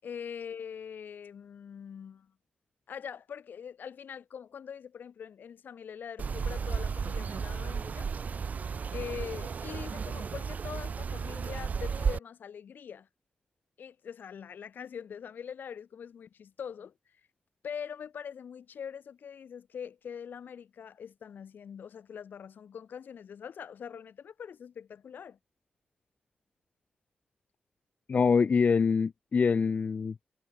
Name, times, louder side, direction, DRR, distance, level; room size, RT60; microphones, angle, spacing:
voice 1, 0.0-2.3 2.9-8.1 8.9-13.1 13.8-16.9 17.6-25.4, left 7 dB, 75° left, 6.9 m, -43 dB
sound 1, 6.2-12.2, right 6 dB, 50° right, 3.1 m, -33 dB
voice 2, 28.1-30.2, left 5 dB, 50° left, 1.8 m, -25 dB
wide cardioid pair, 125°, 3 cm